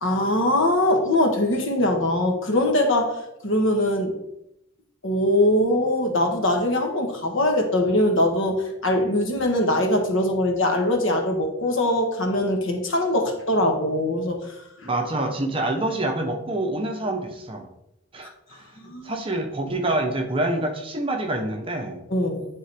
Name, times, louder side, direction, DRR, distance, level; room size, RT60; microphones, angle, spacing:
voice 1, 0.0-4.1 5.0-14.9 18.8-19.1 22.1-22.5, left 1 dB, 75° left, 3 dB, 1.2 m, -22 dB
voice 2, 14.8-17.7 18.1-22.0, right 1 dB, 25° right, 3 dB, 0.7 m, -27 dB
9.5 x 3.7 x 3.4 m, 0.82 s
head